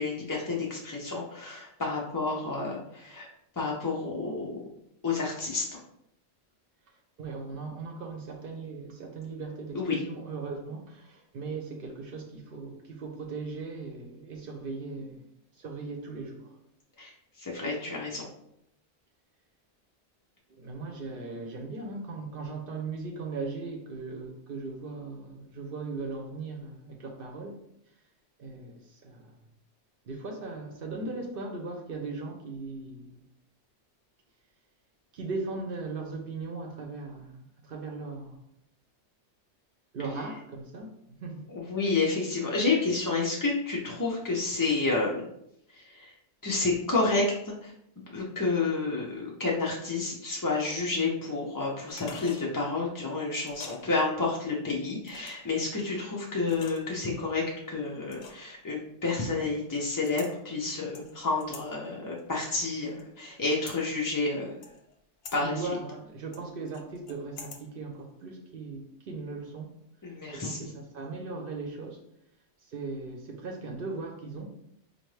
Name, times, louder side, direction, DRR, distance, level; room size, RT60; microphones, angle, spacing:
voice 1, 0.0-3.3 3.6-4.6 5.0-5.8 9.7-10.0 17.0-17.1 17.4-18.3 41.5-45.2 45.8-46.1 46.4-47.7 48.1-64.5 65.3-65.7 70.0-70.7, left 3 dB, 30° left, 0.3 m, -30 dB
voice 2, 7.2-15.2 15.6-16.6 20.5-27.6 28.4-29.3 30.0-33.2 35.1-38.4 39.9-40.9 41.2-41.5 65.4-69.7 70.3-72.0 72.7-74.5, right 3 dB, 60° right, 0.7 m, -38 dB
sound 1, 51.9-52.5 53.4-53.8 55.0-55.5 56.4-57.1 58.1-58.6 60.0-60.3 60.9-61.6 62.2-63.0 63.4-63.8 64.6-65.0 65.2-65.4 66.3-67.6 67.9-68.0, left 5 dB, 65° left, 0.8 m, -46 dB
4.4 x 2.5 x 3.2 m
omnidirectional pair, 1.2 m